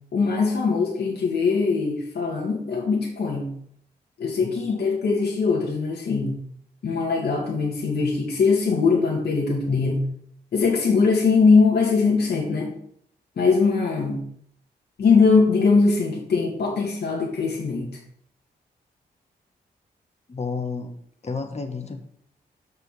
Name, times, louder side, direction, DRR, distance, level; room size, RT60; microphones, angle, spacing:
voice 1, 0.1-3.5 4.2-6.4 6.8-10.0 10.5-12.7 13.4-14.2 15.0-18.0, left 4 dB, 70° left, -2 dB, 2.0 m, -21 dB
voice 2, 20.3-20.9 21.2-22.0, left 4 dB, 40° left, 6 dB, 1.6 m, -30 dB
6.3 x 5.4 x 6.4 m, 0.67 s
cardioid pair, 60°, 18 cm